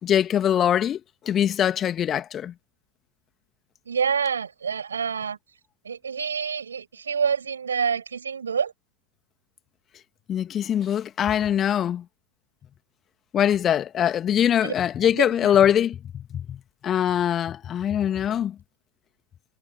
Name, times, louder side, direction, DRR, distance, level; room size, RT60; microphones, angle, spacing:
voice 1, 0.0-1.0 1.3-2.5 10.3-12.0 13.3-18.5, left 10 dB, 25° left, 2.5 m, -23 dB
voice 2, 3.9-5.4 5.8-8.7 14.6-14.7 15.1-15.5, right 6 dB, 70° right, 7.2 m, -27 dB
figure-of-eight pair, 90°, 0 cm